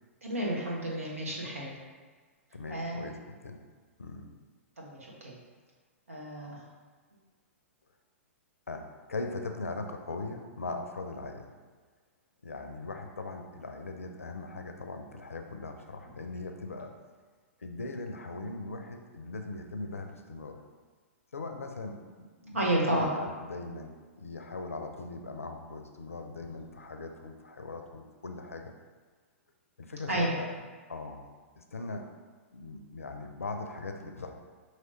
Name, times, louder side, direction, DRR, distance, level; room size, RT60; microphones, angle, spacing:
voice 1, 0.2-1.8 2.7-3.1 4.8-5.3 6.1-6.6 22.5-23.1 30.1-30.3, right 1 dB, 80° right, -3 dB, 1.2 m, -31 dB
voice 2, 2.5-3.6 4.0-4.3 8.7-11.5 12.4-16.9 17.6-20.6 21.3-28.7 29.8-30.5 30.9-31.3 31.6-32.1 32.5-34.3, left 3 dB, 85° left, 5 dB, 0.5 m, -40 dB
5.7 x 3.0 x 3.0 m, 1.5 s
figure-of-eight pair, 110°, 7 cm